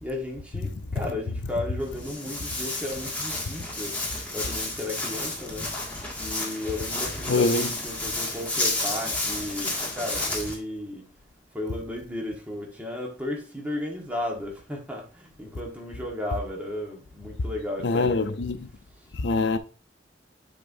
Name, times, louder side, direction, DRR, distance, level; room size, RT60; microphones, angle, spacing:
voice 1, 0.0-3.9 4.3-5.7 6.2-11.0 11.5-18.2, left 1 dB, 10° right, 1.3 m, -34 dB
Walk footsteps, 1.8-10.5, left 2 dB, 10° left, 1.9 m, -31 dB
voice 2, 7.3-7.7 17.8-18.7 19.1-19.6, left 3 dB, 80° left, 0.6 m, -24 dB
10.0 x 4.4 x 2.6 m
head